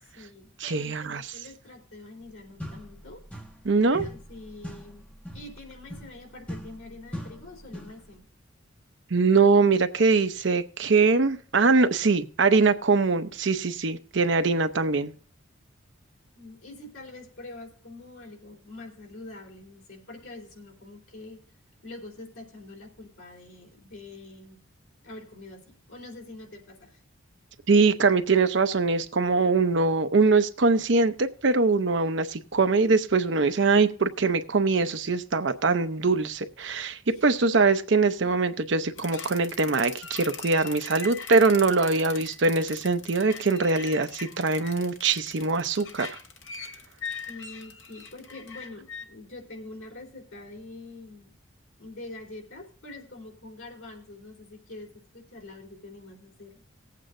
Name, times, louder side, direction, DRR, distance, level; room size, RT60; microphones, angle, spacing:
voice 1, 0.0-3.2 3.9-8.3 16.3-21.4 21.8-24.6 25.0-27.0 37.1-37.2 47.2-51.3 51.8-56.6, left 2 dB, 80° left, 0 dB, 3.4 m, -45 dB
voice 2, 0.6-1.2 3.7-4.0 9.1-15.1 27.7-46.2, right 4 dB, 60° right, 10 dB, 0.7 m, -22 dB
sound 1, 2.2-2.3 2.6-3.7 3.9-8.1, equal, 5° left, 1.2 m, -41 dB
sound 2, 39.0-49.1, left 6 dB, 65° left, 1.0 m, -41 dB
19.0 x 8.3 x 2.6 m, 0.43 s
head